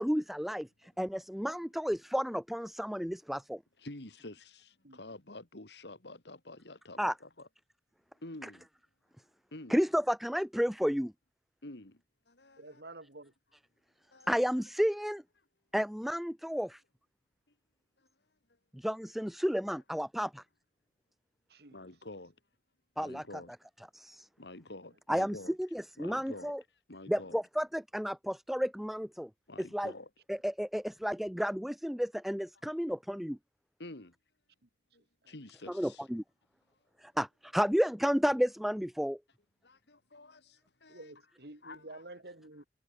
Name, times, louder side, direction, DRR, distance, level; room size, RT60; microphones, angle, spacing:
voice 1, 0.0-3.6 7.0-7.1 8.4-8.5 9.7-11.1 14.3-15.2 15.7-16.8 18.7-20.4 23.0-23.2 23.9-24.3 25.1-26.6 27.1-29.3 29.6-29.9 30.3-33.4 35.7-36.2 37.0-39.2, equal, ahead, 0.6 m, -32 dB
voice 2, 3.8-7.5 8.2-8.7 9.5-9.8 11.6-12.0 12.3-12.6 14.1-14.3 21.7-22.3 23.0-23.5 24.4-25.5 26.0-26.5 26.9-27.4 29.5-30.1 33.8-34.1 34.9-36.0 39.6-41.0 41.6-42.0, left 2 dB, 75° left, 2.7 m, -48 dB
voice 3, 12.6-13.3 21.5-21.9 34.6-34.7 35.2-35.4 40.9-42.7, right 2 dB, 65° right, 2.8 m, -50 dB
head